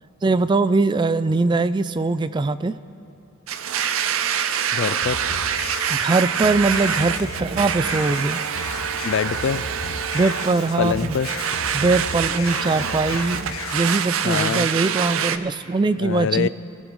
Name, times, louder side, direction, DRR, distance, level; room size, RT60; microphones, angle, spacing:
voice 1, 0.2-2.7 5.9-8.4 10.1-11.2 11.7-16.5, right 3 dB, 20° right, 14 dB, 0.3 m, -21 dB
Domestic sounds home sounds, 3.5-15.4, right 8 dB, 75° right, 0.6 m, -26 dB
voice 2, 4.7-5.2 9.0-9.6 10.8-11.3 14.2-14.7 16.0-16.5, left 7 dB, 60° left, 17 dB, 0.3 m, -24 dB
sound 1, 5.0-14.1, left 3 dB, 85° left, 1.1 m, -35 dB
25.5 x 15.5 x 3.2 m, 2.5 s
head